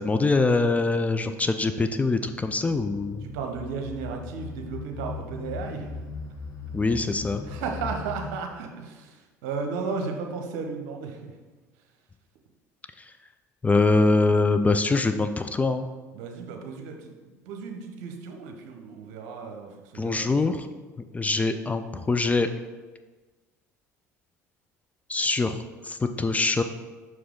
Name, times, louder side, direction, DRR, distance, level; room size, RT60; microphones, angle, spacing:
voice 1, 0.0-3.2 6.7-7.4 13.6-15.9 19.9-20.7 21.1-22.5 25.1-25.6 25.8-26.6, left 3 dB, 15° left, 8 dB, 0.4 m, -23 dB
sound 1, 2.2-8.3, left 4 dB, 45° left, 1.4 m, -39 dB
voice 2, 3.2-6.0 7.1-11.3 16.1-20.4, right 5 dB, 65° right, 3 dB, 0.9 m, -35 dB
6.0 x 4.8 x 3.8 m, 1.3 s
figure-of-eight pair, 65°, 9 cm